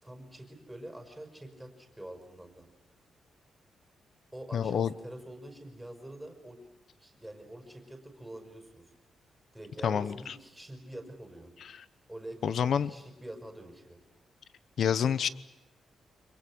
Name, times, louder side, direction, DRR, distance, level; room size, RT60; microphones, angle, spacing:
voice 1, 0.0-2.7 4.3-6.6 7.0-8.9 9.5-11.5 12.1-14.0, right 1 dB, 5° right, 4 dB, 5.4 m, -46 dB
voice 2, 4.5-4.9 9.8-10.3 11.6-11.7 12.4-12.9 14.8-15.3, left 8 dB, 55° left, 16 dB, 0.9 m, -28 dB
30.0 x 27.0 x 6.3 m, 0.96 s
wide cardioid pair, 160°, 0 cm